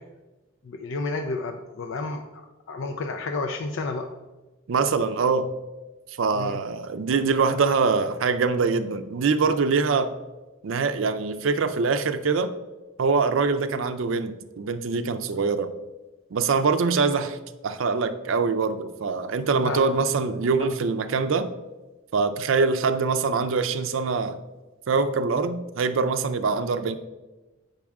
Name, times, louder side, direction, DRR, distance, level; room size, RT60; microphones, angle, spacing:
voice 1, 0.6-4.1 6.3-6.6 19.6-19.9 20.6-20.7, left 3 dB, 65° left, 5 dB, 0.5 m, -31 dB
voice 2, 4.7-5.5 6.2-10.1 10.6-12.5 13.0-15.7 16.3-17.4 17.6-21.5 22.1-24.4 24.9-27.0, right 4 dB, 70° right, 9 dB, 0.5 m, -24 dB
7.3 x 5.3 x 3.5 m, 1.1 s
head